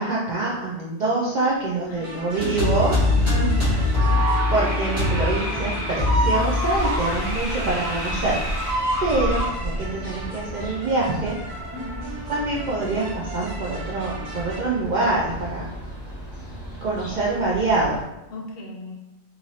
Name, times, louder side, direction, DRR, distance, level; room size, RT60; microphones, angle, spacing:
voice 1, 0.0-3.0 3.2-3.4 3.7-3.8 4.5-8.7 9.0-11.4 12.3-15.7 16.8-18.0, right 2 dB, 60° right, -5 dB, 0.5 m, -25 dB
sound 1, 1.5-18.0, equal, 15° left, 0.6 m, -35 dB
sound 2, 2.0-14.6, right 1 dB, 90° right, 1.2 m, -40 dB
sound 3, 2.3-9.5, left 1 dB, 25° right, 1.4 m, -23 dB
voice 2, 3.3-4.2 6.2-6.5 9.1-9.2 11.7-12.2 18.3-18.9, left 2 dB, 65° left, -1 dB, 0.7 m, -36 dB
3.0 x 2.5 x 2.7 m, 0.93 s
omnidirectional pair, 1.2 m